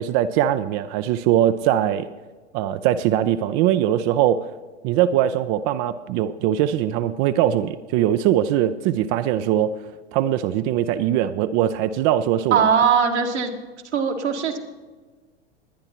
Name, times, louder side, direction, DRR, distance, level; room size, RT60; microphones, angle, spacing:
voice 1, 0.0-2.1 2.5-4.5 4.8-9.7 10.1-12.8, right 11 dB, 40° right, 11 dB, 0.5 m, -21 dB
voice 2, 12.5-13.5 13.9-14.6, right 6 dB, 80° right, 2 dB, 1.9 m, -20 dB
21.5 x 9.7 x 2.9 m, 1.4 s
figure-of-eight pair, 90°, 34 cm